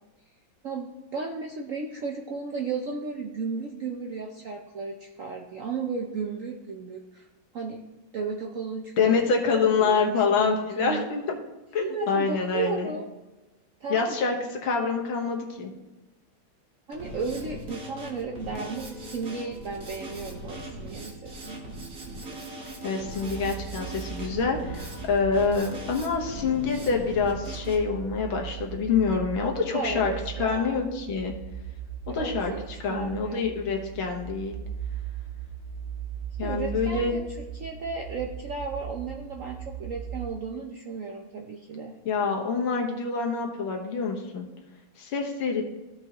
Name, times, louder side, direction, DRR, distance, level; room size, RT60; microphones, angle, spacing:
voice 1, 0.6-7.2 7.5-7.8 8.1-9.2 9.8-11.0 11.8-13.1 13.8-14.2 16.9-21.1 21.4-21.6 29.7-30.8 32.1-32.6 32.9-33.5 36.4-37.2 37.6-41.9, right 4 dB, 65° right, 1 dB, 0.8 m, -34 dB
voice 2, 9.0-11.2 11.7-12.9 13.9-14.4 14.6-15.7 22.8-30.1 30.4-31.3 32.1-32.5 32.8-34.6 36.4-37.2 42.1-44.5 45.0-45.6, left 5 dB, 80° left, 1 dB, 2.0 m, -26 dB
Drum kit, 16.9-27.7, right 1 dB, 45° right, 1.8 m, -40 dB
sound 1, 23.2-40.2, right 9 dB, 60° left, 2.0 m, -39 dB
14.5 x 5.3 x 2.9 m, 1.1 s
omnidirectional pair, 2.2 m